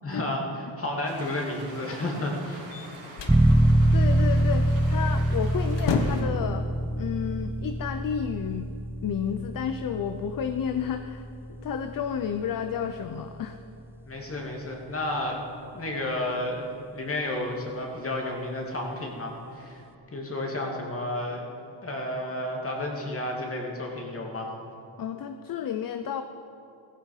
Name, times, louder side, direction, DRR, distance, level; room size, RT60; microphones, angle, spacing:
voice 1, 0.0-0.4 0.8-2.7 14.0-15.4 15.7-16.7 16.9-19.8 20.1-21.4 21.8-24.5, left 1 dB, 30° left, 0 dB, 2.5 m, -31 dB
sound 1, 1.0-6.2, right 2 dB, 85° right, 3.9 m, -44 dB
sound 2, 2.7-3.5 5.1-5.3 5.6-6.4, left 5 dB, 70° left, 1.4 m, -29 dB
sound 3, 3.3-13.8, right 1 dB, 5° right, 0.4 m, -25 dB
voice 2, 3.9-6.7 7.0-8.7 9.0-13.6 25.0-26.2, left 8 dB, 50° left, 8 dB, 0.7 m, -31 dB
16.5 x 15.5 x 5.0 m, 2.7 s
cardioid pair, 125°, 44 cm